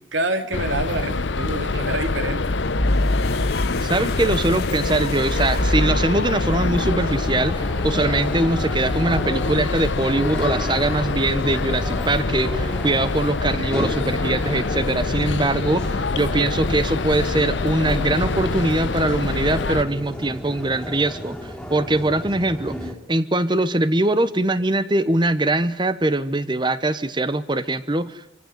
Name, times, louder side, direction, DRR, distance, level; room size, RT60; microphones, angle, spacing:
voice 1, 0.1-2.4, right 2 dB, 75° right, 8 dB, 2.9 m, -27 dB
sound 1, 0.5-19.8, left 3 dB, 70° left, 0.8 m, -25 dB
sound 2, 2.4-7.5, left 1 dB, 50° left, 2.1 m, -26 dB
voice 2, 3.5-28.4, right 2 dB, 25° right, 13 dB, 1.0 m, -22 dB
sound 3, 6.7-22.9, equal, 5° left, 2.8 m, -33 dB
26.0 x 16.0 x 9.3 m, 0.88 s
head